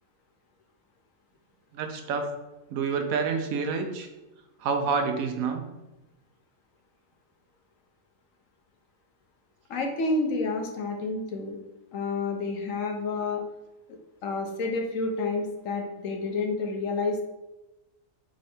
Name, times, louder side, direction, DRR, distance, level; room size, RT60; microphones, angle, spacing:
voice 1, 1.7-2.3 2.7-4.1 4.6-5.6, right 5 dB, 85° right, 6 dB, 1.1 m, -28 dB
voice 2, 9.7-11.6 11.9-13.4 14.2-17.2, left 3 dB, 75° left, 3 dB, 1.1 m, -29 dB
3.6 x 3.3 x 4.2 m, 1.0 s
omnidirectional pair, 1.4 m